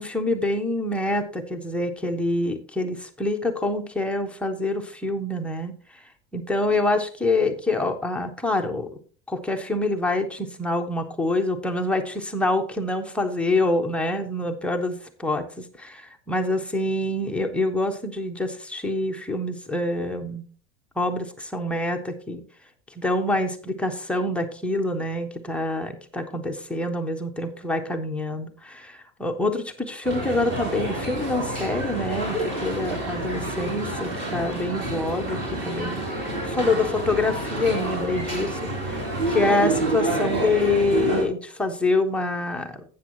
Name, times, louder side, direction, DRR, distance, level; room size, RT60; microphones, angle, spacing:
voice 1, 0.0-6.0 6.3-8.9 9.3-20.4 21.0-22.4 23.0-36.0 36.4-42.8, left 2 dB, 5° left, 3 dB, 0.4 m, -26 dB
sound 1, 30.0-41.2, right 2 dB, 35° right, 3.1 m, -28 dB
12.0 x 8.3 x 2.9 m, 0.41 s
supercardioid pair, 165°, 33 cm